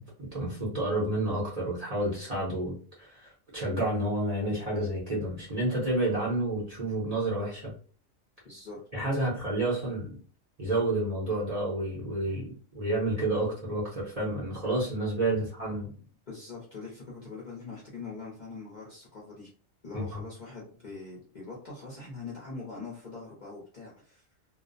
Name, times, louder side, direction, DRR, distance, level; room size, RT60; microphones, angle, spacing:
voice 1, 0.0-7.7 8.9-10.1 10.6-15.9 19.9-20.2, right 1 dB, 35° right, -6 dB, 0.7 m, -30 dB
voice 2, 8.4-8.8 16.0-19.5 19.8-24.3, left 3 dB, 45° left, -5 dB, 0.7 m, -43 dB
2.4 x 2.0 x 2.5 m, 0.43 s
omnidirectional pair, 1.4 m